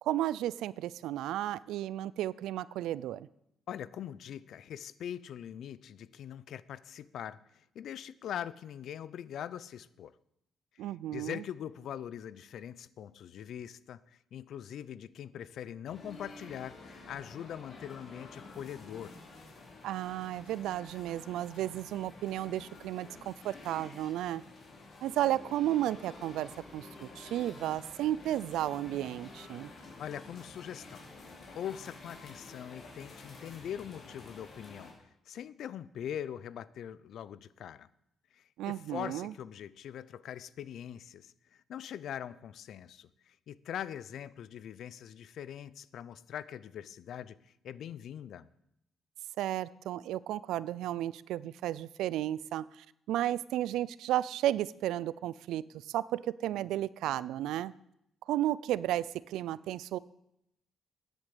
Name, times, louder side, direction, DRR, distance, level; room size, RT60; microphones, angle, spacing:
voice 1, 0.0-3.3 10.8-11.4 19.8-24.4 25.0-29.7 38.6-39.3 49.4-57.7 58.3-60.0, right 13 dB, 85° right, 20 dB, 0.4 m, -33 dB
voice 2, 3.7-10.1 10.7-10.9 11.1-19.2 30.0-31.0 31.5-34.9 35.3-37.9 38.3-48.5, left 9 dB, 70° left, 18 dB, 0.5 m, -42 dB
sound 1, 15.9-34.9, left 3 dB, 55° left, 3.9 m, -50 dB
10.5 x 8.0 x 8.4 m, 0.79 s
cardioid pair, 90°, 0 cm